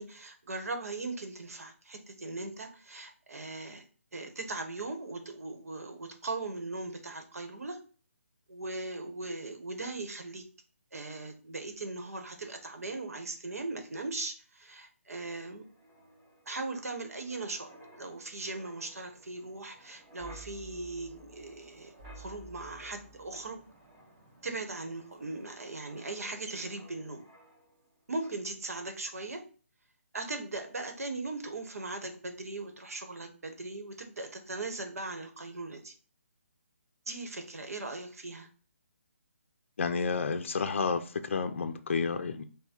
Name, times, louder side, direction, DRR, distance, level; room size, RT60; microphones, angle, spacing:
voice 1, 0.0-3.8 4.1-7.8 8.5-10.4 10.9-15.6 16.5-17.7 18.0-23.6 24.4-27.2 28.1-29.4 30.1-35.9 37.1-38.5, right 2 dB, 80° right, 1.0 m, -39 dB
Wind, 15.5-27.9 28.2-28.5, right 1 dB, 30° right, 1.4 m, -55 dB
voice 2, 39.8-42.4, left 5 dB, 55° left, 0.5 m, -30 dB
5.5 x 2.2 x 4.3 m
hypercardioid pair, 165°, 8 cm